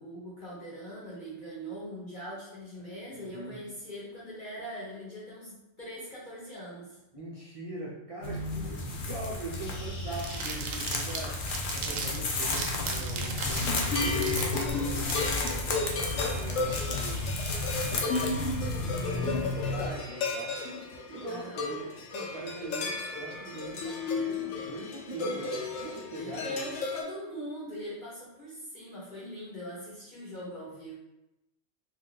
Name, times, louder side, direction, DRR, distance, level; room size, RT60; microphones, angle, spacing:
voice 1, 0.0-7.0 21.3-21.7 26.2-30.9, equal, 45° left, -8 dB, 0.9 m, -41 dB
voice 2, 3.1-3.6 7.1-14.4 14.8-17.2 17.9-20.6 21.1-26.6, right 1 dB, 50° right, -6 dB, 0.4 m, -42 dB
sound 1, 8.2-19.9, left 2 dB, 60° left, 0.5 m, -33 dB
sound 2, 10.1-15.8, right 4 dB, 90° right, 1.0 m, -37 dB
sound 3, 13.6-27.0, left 3 dB, 80° left, 1.0 m, -34 dB
2.6 x 2.3 x 3.7 m, 0.92 s
omnidirectional pair, 1.3 m